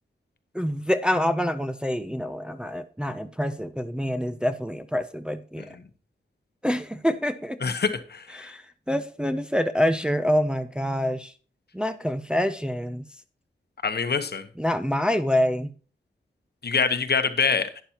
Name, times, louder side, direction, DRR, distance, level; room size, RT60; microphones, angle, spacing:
voice 1, 0.5-5.8 6.6-7.6 8.3-11.3 11.7-13.0 14.6-15.7, equal, 5° right, 0.5 m, -26 dB
voice 2, 7.6-8.5 13.8-14.5 16.6-17.7, left 5 dB, 55° left, 1.0 m, -25 dB
11.5 x 9.5 x 2.9 m
wide cardioid pair, 125°, 20 cm